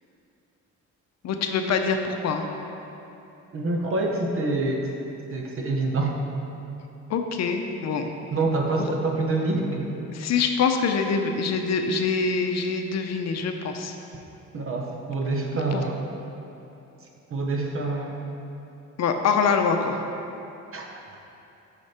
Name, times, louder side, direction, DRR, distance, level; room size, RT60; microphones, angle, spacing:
voice 1, 1.2-2.5 7.1-8.1 8.8-8.9 10.1-13.9 15.5-15.8 19.0-20.0, left 5 dB, 60° left, 5 dB, 0.6 m, -25 dB
voice 2, 3.5-4.9 5.3-6.5 8.3-10.0 14.5-16.0 17.3-18.2 20.7-20.8, right 2 dB, 45° right, 1 dB, 1.0 m, -26 dB
6.3 x 5.8 x 4.4 m, 2.9 s
cardioid pair, 90°, 30 cm